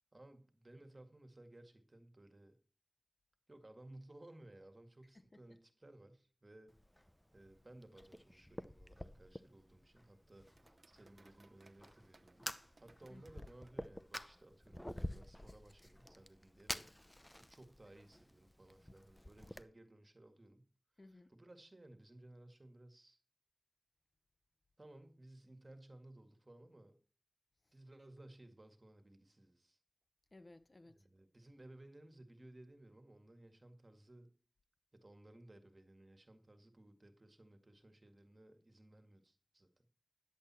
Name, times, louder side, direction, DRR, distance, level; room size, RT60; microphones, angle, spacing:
voice 1, 0.1-2.6 3.5-6.8 7.3-12.5 12.8-20.7 21.3-23.2 24.8-27.0 27.7-29.8 31.0-34.3 34.9-39.9, right 1 dB, 40° right, 1.9 m, -59 dB
voice 2, 5.1-5.6 13.1-13.4 21.0-21.3 27.6-27.8 30.3-31.1, left 2 dB, 45° left, 0.8 m, -60 dB
Fire, 6.7-19.6, left 1 dB, 15° left, 0.7 m, -50 dB
sound 1, 6.7-13.7, right 3 dB, 60° right, 0.8 m, -70 dB
10.5 x 8.0 x 4.3 m
wide cardioid pair, 45°, 0 cm